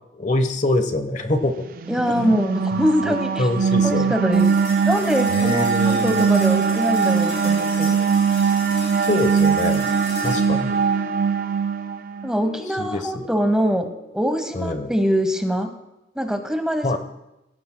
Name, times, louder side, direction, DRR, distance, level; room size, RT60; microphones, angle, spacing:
voice 1, 0.1-1.5 2.1-2.3 2.7-4.1 5.4-6.2 9.0-9.9 10.2-10.8 12.8-13.3 14.5-14.9 16.8-17.0, left 2 dB, 40° left, 7 dB, 1.0 m, -25 dB
sound 1, 1.8-12.3, right 6 dB, 50° right, 0.4 m, -21 dB
voice 2, 1.9-3.5 3.8-4.5 4.9-8.0 12.2-13.9 14.1-15.7 16.2-17.0, equal, 5° right, 5 dB, 1.1 m, -23 dB
sound 2, 4.3-14.9, left 3 dB, 80° left, 6.0 m, -35 dB
24.5 x 16.0 x 2.2 m, 0.94 s
head